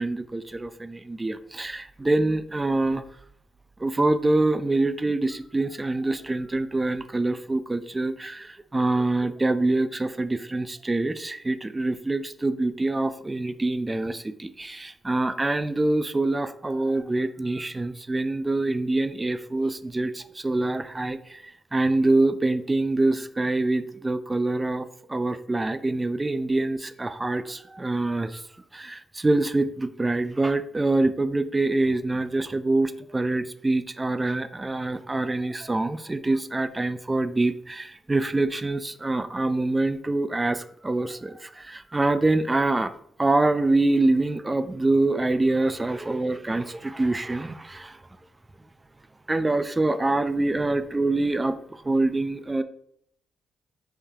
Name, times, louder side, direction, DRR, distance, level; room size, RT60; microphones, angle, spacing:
voice 1, 0.0-3.0 3.8-28.5 28.7-42.9 43.2-48.0 49.3-52.6, right 2 dB, 20° right, 11 dB, 0.3 m, -25 dB
5.6 x 3.3 x 2.7 m, 0.67 s
cardioid pair, 80°, 0 cm